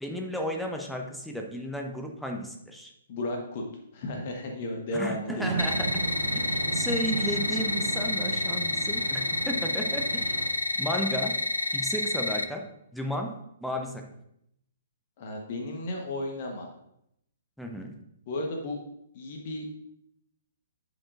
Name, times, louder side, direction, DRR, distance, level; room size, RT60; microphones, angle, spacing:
voice 1, 0.0-2.9 4.9-5.9 6.3-10.4 10.8-11.4 11.7-12.7 12.9-14.1 17.6-17.9, equal, ahead, 2 dB, 0.8 m, -33 dB
voice 2, 3.1-3.6 3.9-5.6 15.2-16.7 18.3-18.8 19.1-19.7, left 1 dB, 40° left, 1 dB, 1.2 m, -34 dB
sound 1, 5.4-10.5, right 4 dB, 60° right, 0.9 m, -34 dB
sound 2, 5.6-12.4, left 2 dB, 80° left, 0.5 m, -29 dB
11.0 x 5.1 x 2.5 m, 0.76 s
figure-of-eight pair, 120°, 0 cm